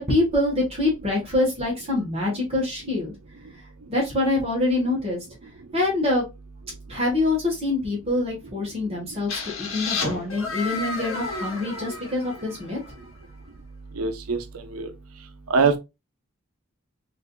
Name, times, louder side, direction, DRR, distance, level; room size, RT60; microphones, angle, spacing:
voice 1, 0.1-3.1 3.9-5.2 5.7-6.2 6.9-12.8, left 2 dB, 25° right, 1.2 m, -25 dB
sound 1, 9.3-13.0, left 3 dB, 70° left, 1.1 m, -32 dB
voice 2, 14.0-14.4 14.7-14.9 15.5-15.8, right 4 dB, 85° right, 0.6 m, -22 dB
4.6 x 2.6 x 2.2 m
head